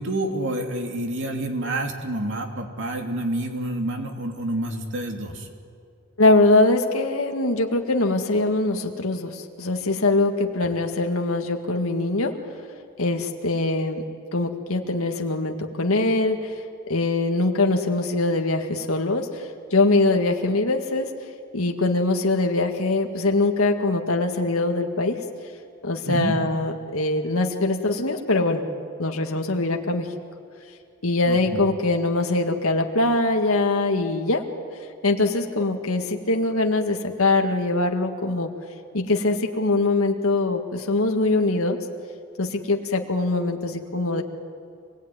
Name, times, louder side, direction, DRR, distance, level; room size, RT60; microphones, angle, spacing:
voice 1, 0.0-5.5 26.1-26.3 31.2-31.6, right 1 dB, 60° right, 3 dB, 3.1 m, -28 dB
voice 2, 6.2-12.4 13.0-14.0 14.3-21.1 21.5-25.2 25.8-28.7 29.0-30.1 31.0-34.5 35.0-38.5 38.9-41.8 42.4-44.2, left 2 dB, 80° left, 3 dB, 2.0 m, -22 dB
27.0 x 19.5 x 9.6 m, 2.4 s
head